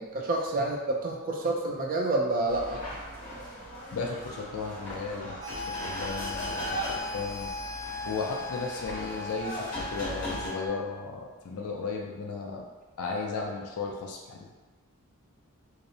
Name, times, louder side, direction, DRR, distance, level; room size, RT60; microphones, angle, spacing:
voice 1, 0.0-2.8, right 2 dB, 40° right, 0 dB, 0.4 m, -28 dB
sound 1, 2.5-10.5, equal, 35° left, 1.1 m, -38 dB
voice 2, 3.9-7.5 8.1-12.6 13.0-14.5, left 4 dB, 70° left, 0 dB, 0.4 m, -35 dB
sound 2, 5.4-10.7, left 3 dB, 55° right, 0.8 m, -38 dB
2.7 x 2.0 x 2.6 m, 1.2 s
head